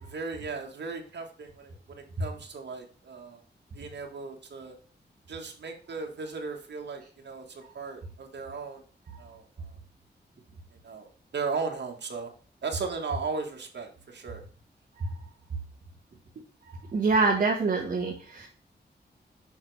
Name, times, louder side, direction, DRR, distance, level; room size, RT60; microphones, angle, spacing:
voice 1, 0.0-3.4 3.7-4.7 5.3-8.8 9.2-9.4 10.8-12.3 12.6-14.4, right 4 dB, 75° right, 2 dB, 1.8 m, -36 dB
voice 2, 16.9-18.5, right 3 dB, 45° right, -1 dB, 1.5 m, -25 dB
7.1 x 6.2 x 3.4 m, 0.41 s
wide cardioid pair, 175°, 18 cm